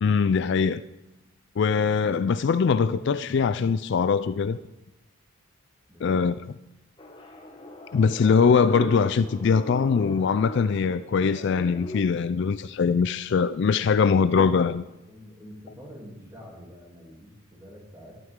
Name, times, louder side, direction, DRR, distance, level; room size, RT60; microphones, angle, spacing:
voice 1, 0.0-0.8 1.6-4.6 6.0-6.3 7.9-14.8, left 5 dB, 55° left, 0.3 m, -22 dB
voice 2, 5.9-6.2 15.1-18.2, equal, 15° right, 2.8 m, -46 dB
sound 1, 7.0-12.0, left 1 dB, 25° left, 1.1 m, -41 dB
12.5 x 12.0 x 3.7 m
head